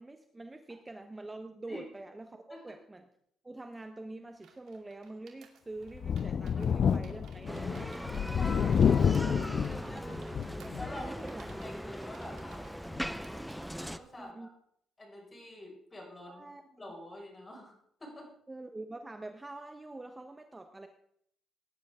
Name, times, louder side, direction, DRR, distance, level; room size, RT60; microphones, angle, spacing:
voice 1, 0.0-3.1 3.4-7.9 8.5-8.7 9.7-10.2 10.5-10.6 10.9-11.5 11.8-11.9 14.2-14.5 16.3-16.6 18.5-20.9, right 2 dB, 15° right, 6 dB, 1.0 m, -45 dB
sound 1, 4.3-14.0, right 7 dB, 75° right, 2.4 m, -60 dB
Thunder, 5.9-11.1 11.5-11.6 12.9-13.0, left 7 dB, 55° left, 0.4 m, -29 dB
Bicycle, 7.5-14.0, equal, ahead, 0.7 m, -40 dB
voice 2, 8.4-10.3 10.7-12.7 13.8-14.5 15.0-16.4 16.8-17.7 18.0-18.3, left 1 dB, 25° left, 0 dB, 5.5 m, -46 dB
18.5 x 10.5 x 3.7 m, 0.69 s
cardioid pair, 90°, 0 cm